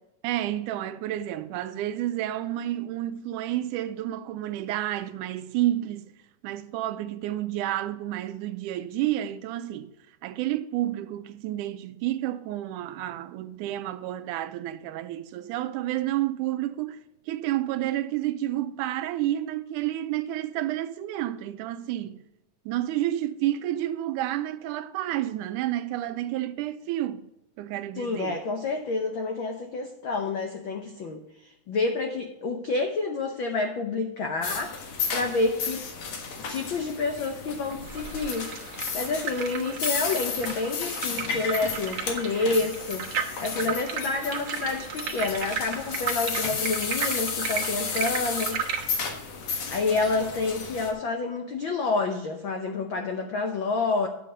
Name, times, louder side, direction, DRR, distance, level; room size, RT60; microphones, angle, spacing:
voice 1, 0.2-6.1 6.4-9.9 10.2-22.2 22.7-27.3 27.6-28.4, right 13 dB, 85° right, 2.1 m, -30 dB
voice 2, 28.0-35.8 36.4-38.5 38.9-48.6 49.4-54.1, left 3 dB, 85° left, 1.1 m, -29 dB
sound 1, 34.4-50.9, left 5 dB, 60° left, 2.6 m, -33 dB
sound 2, 37.9-48.8, right 7 dB, 60° right, 1.3 m, -34 dB
10.0 x 7.6 x 5.0 m
omnidirectional pair, 3.6 m